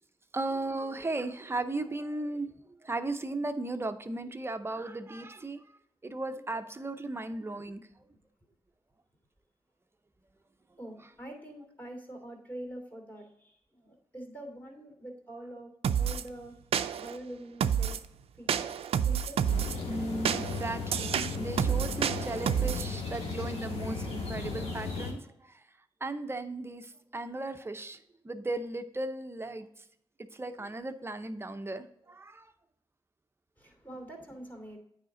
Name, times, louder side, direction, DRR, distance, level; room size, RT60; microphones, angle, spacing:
voice 1, 0.3-2.5 2.8-5.6 6.0-7.8 19.9-25.2 25.4-25.5 26.0-28.0 28.2-29.7 30.3-32.5, right 2 dB, 25° right, 0.7 m, -36 dB
voice 2, 10.8-15.7 16.0-16.5 17.0-18.0 18.4-18.7 19.0-19.6 33.6-34.8, right 1 dB, 15° left, 2.7 m, -45 dB
sound 1, 15.8-16.2 16.7-17.2 17.6-18.1 18.5-19.8 20.3-22.9, right 8 dB, 75° right, 0.4 m, -29 dB
sound 2, 19.4-25.1, left 3 dB, 85° left, 2.4 m, -36 dB
9.1 x 5.0 x 3.8 m
cardioid pair, 65°, 10 cm